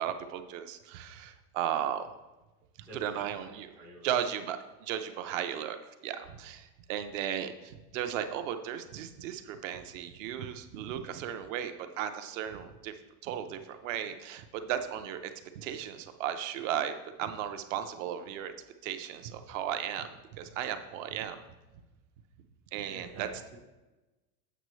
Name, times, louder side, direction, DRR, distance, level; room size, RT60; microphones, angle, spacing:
voice 1, 0.0-2.1 2.8-3.7 4.0-5.8 6.0-12.9 13.2-18.5 18.8-21.4 22.7-23.3, right 10 dB, 55° right, 8 dB, 0.6 m, -35 dB
voice 2, 2.8-4.1 22.9-23.3, right 2 dB, 5° right, -7 dB, 0.3 m, -49 dB
8.0 x 6.1 x 3.1 m, 1.1 s
supercardioid pair, 165°, 46 cm